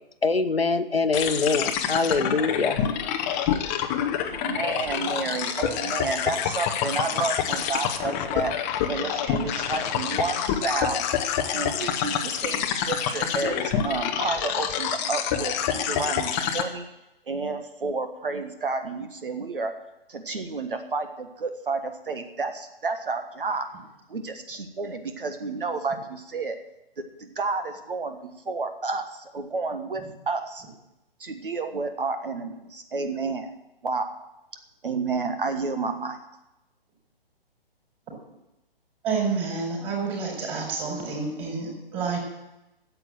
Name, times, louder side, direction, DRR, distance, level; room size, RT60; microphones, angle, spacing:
voice 1, 0.2-2.8, left 4 dB, 80° left, 9 dB, 1.1 m, -24 dB
sound 1, 1.1-16.6, left 9 dB, 15° left, 0.7 m, -27 dB
voice 2, 4.2-8.5 8.9-11.1 11.5-16.9 17.3-19.7 20.1-23.7 24.1-26.6 27.2-30.6 31.2-33.5 33.8-34.1 34.8-36.2, right 4 dB, 60° right, 7 dB, 1.4 m, -30 dB
voice 3, 39.0-42.2, right 4 dB, 20° right, 0 dB, 4.5 m, -29 dB
13.5 x 8.2 x 7.6 m, 0.91 s
figure-of-eight pair, 130°, 30 cm